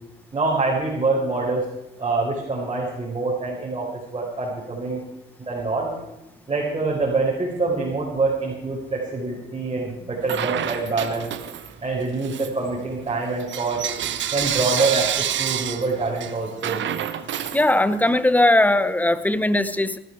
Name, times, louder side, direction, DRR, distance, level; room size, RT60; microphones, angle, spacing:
voice 1, 0.3-1.7 2.0-5.0 5.5-5.9 6.5-11.3 11.8-13.8 14.3-16.8, right 3 dB, 30° right, -4 dB, 4.7 m, -25 dB
Bell / Coin (dropping), 10.2-11.8 12.2-18.2, right 10 dB, 70° right, 1.1 m, -28 dB
voice 2, 17.5-20.0, left 1 dB, 10° left, 14 dB, 0.9 m, -19 dB
18.5 x 12.5 x 4.8 m, 0.89 s
cardioid pair, 90°, 20 cm